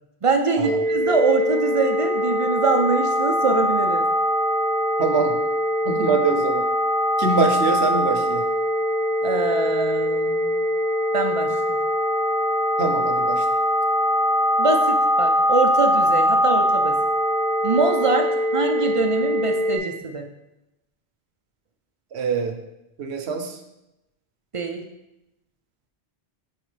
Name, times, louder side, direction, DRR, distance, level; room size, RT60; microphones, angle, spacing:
voice 1, 0.2-4.0 9.2-10.6 11.1-11.6 14.6-17.0 17.6-20.3 24.5-24.8, right 3 dB, 45° right, 5 dB, 0.4 m, -23 dB
sound 1, 0.6-19.8, equal, 5° left, 1.3 m, -22 dB
voice 2, 5.0-5.4 5.8-6.7 7.2-8.5 12.8-13.4 22.1-22.5 23.0-23.6, right 4 dB, 80° right, 6 dB, 1.0 m, -24 dB
8.8 x 4.0 x 3.2 m, 0.90 s
omnidirectional pair, 1.1 m